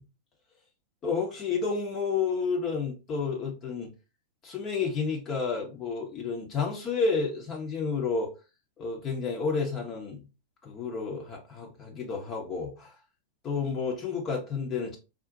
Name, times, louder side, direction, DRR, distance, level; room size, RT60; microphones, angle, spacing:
voice 1, 1.0-3.9 4.4-8.3 8.8-10.2 10.6-12.9 13.4-15.0, left 5 dB, 30° left, 0.7 m, -30 dB
3.8 x 2.1 x 2.7 m
figure-of-eight pair, 90°, 0 cm